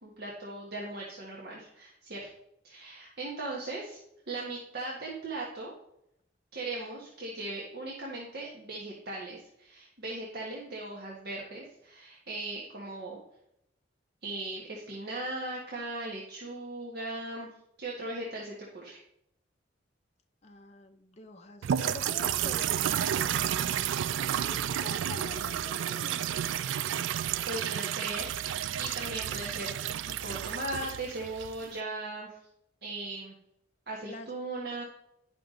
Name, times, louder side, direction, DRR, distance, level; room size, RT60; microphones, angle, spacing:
voice 1, 0.0-2.3 2.6-4.0 4.3-5.7 6.5-13.2 14.2-17.5 17.8-19.0 27.4-29.9 30.2-32.4 32.8-33.3 33.9-34.8, right 2 dB, 55° right, -4 dB, 1.4 m, -38 dB
voice 2, 20.4-26.5 34.0-34.3, left 2 dB, 35° left, 4 dB, 0.6 m, -46 dB
sound 1, 21.6-31.8, right 10 dB, 85° right, 0.3 m, -31 dB
10.5 x 5.9 x 3.8 m, 0.78 s
head